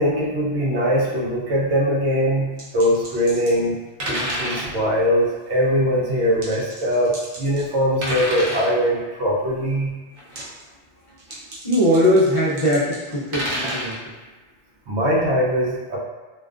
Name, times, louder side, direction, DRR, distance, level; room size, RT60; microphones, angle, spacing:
voice 1, 0.0-3.8 4.1-9.9 14.9-16.0, equal, 80° right, -4 dB, 0.9 m, -21 dB
sound 1, 2.6-3.6 4.0-4.7 6.4-7.7 8.0-8.7 10.2-10.6 11.2-14.0, equal, 50° right, 0.6 m, -29 dB
voice 2, 11.6-14.0, equal, 55° left, -7 dB, 0.3 m, -20 dB
2.3 x 2.2 x 2.4 m, 1.2 s
omnidirectional pair, 1.2 m